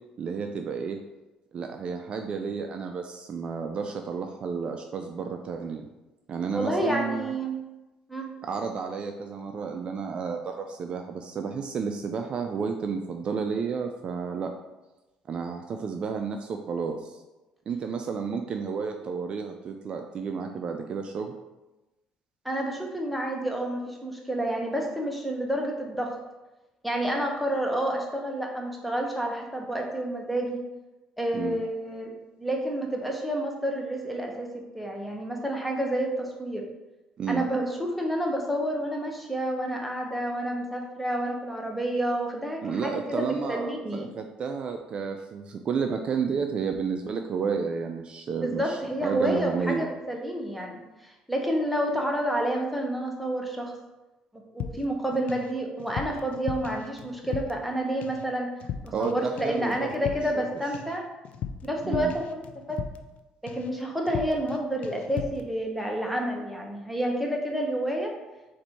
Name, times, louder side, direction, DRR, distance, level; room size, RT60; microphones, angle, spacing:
voice 1, 0.2-1.0 1.5-5.9 6.3-7.3 8.4-14.5 15.3-17.2 17.7-21.3 31.3-31.6 37.2-37.4 42.6-49.9 58.9-60.5 61.8-62.1, right 5 dB, 45° right, 4 dB, 0.3 m, -31 dB
voice 2, 6.5-7.6 8.1-8.3 22.4-26.1 26.8-30.6 31.2-32.1 32.4-36.6 37.3-44.1 48.4-53.7 54.5-58.5 58.8-61.0 61.6-62.8 63.4-68.1, right 1 dB, ahead, 0 dB, 0.8 m, -29 dB
sound 1, 54.6-55.5 55.8-57.7 58.0-58.3 58.6-59.1 59.4-63.2 63.5-63.8 64.1-64.6 64.8-65.5, left 8 dB, 60° left, 0.3 m, -37 dB
4.2 x 2.6 x 4.4 m, 1.1 s
cardioid pair, 110°, 2 cm